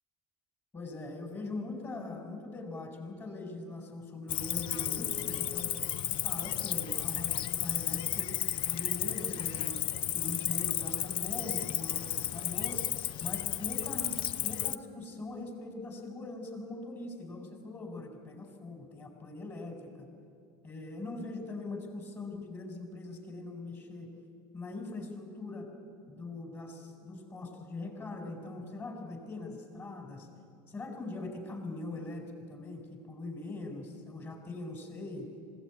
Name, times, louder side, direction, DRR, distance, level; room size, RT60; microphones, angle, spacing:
voice 1, 0.7-5.8 6.2-8.3 8.6-9.8 10.1-12.9 13.2-14.2 14.4-20.1 20.6-24.1 24.5-25.7 26.1-30.3 30.7-35.3, left 2 dB, 25° left, 4 dB, 4.7 m, -41 dB
Cricket, 4.3-14.8, left 12 dB, 50° left, 0.7 m, -33 dB
20.5 x 16.5 x 9.4 m, 2.4 s
supercardioid pair, 110°, 11 cm